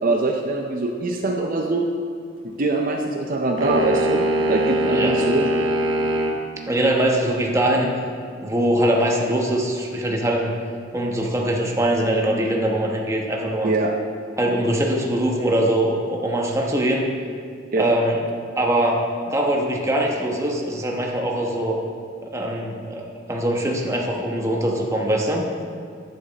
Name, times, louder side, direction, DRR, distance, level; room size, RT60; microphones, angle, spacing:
voice 1, 0.0-1.9 2.4-5.5 13.6-13.9 17.7-17.9, right 2 dB, 45° right, 1 dB, 0.7 m, -23 dB
sound 1, 3.6-6.4, right 1 dB, 80° right, 1.1 m, -22 dB
voice 2, 6.7-7.9 8.4-10.5 10.9-13.7 14.4-17.1 17.8-18.2 18.6-21.8 22.2-25.4, right 1 dB, 15° right, -1 dB, 1.1 m, -22 dB
10.5 x 8.8 x 4.1 m, 2.4 s
head